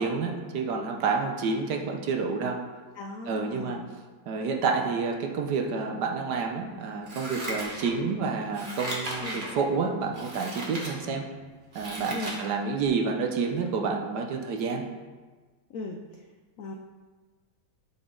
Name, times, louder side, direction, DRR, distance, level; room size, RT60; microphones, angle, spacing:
voice 1, 0.0-2.6 3.3-3.8 4.3-11.2 11.7-14.8, right 4 dB, 65° right, 2 dB, 1.2 m, -29 dB
voice 2, 3.0-3.9 9.2-9.4 12.1-12.3 15.7-16.0 16.6-16.7, left 3 dB, 80° left, 3 dB, 0.7 m, -38 dB
Scissors, 7.0-8.1 8.5-9.5 10.1-10.9 11.4-12.4 12.8-12.9, right 1 dB, 30° right, 1.2 m, -36 dB
7.8 x 6.0 x 3.8 m, 1.4 s
omnidirectional pair, 2.1 m